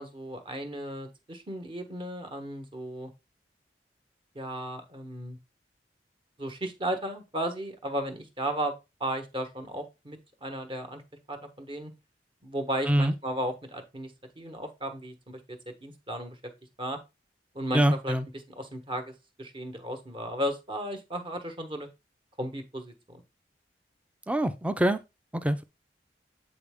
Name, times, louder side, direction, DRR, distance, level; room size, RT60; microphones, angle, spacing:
voice 1, 0.0-3.1 4.3-5.4 6.4-11.0 11.3-11.9 12.4-16.4 16.8-17.0 17.5-18.2 18.5-21.9 22.4-23.2, right 1 dB, 30° right, 1.2 m, -35 dB
voice 2, 17.7-18.2 24.3-25.0 25.3-25.6, right 1 dB, 10° right, 0.5 m, -24 dB
8.5 x 4.2 x 3.6 m
head